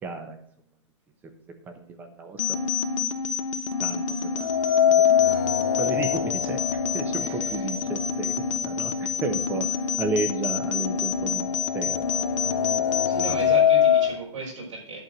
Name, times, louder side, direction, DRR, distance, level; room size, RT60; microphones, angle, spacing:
voice 1, 0.0-0.4 1.7-2.4 3.8-4.5 5.2-5.4 5.8-6.6 6.9-8.3 8.6-9.7 10.0-12.1, right 3 dB, 10° right, 6 dB, 1.0 m, -32 dB
sound 1, 2.4-13.4, left 6 dB, 85° left, 1.2 m, -28 dB
sound 2, 4.4-8.4 8.8-8.9 9.9-10.0 10.3-14.2, left 9 dB, 40° left, 0.5 m, -24 dB
voice 2, 7.2-7.7 13.0-15.0, right 3 dB, 70° right, -3 dB, 5.3 m, -35 dB
11.0 x 4.5 x 7.8 m, 0.62 s
hypercardioid pair, 170°, 16 cm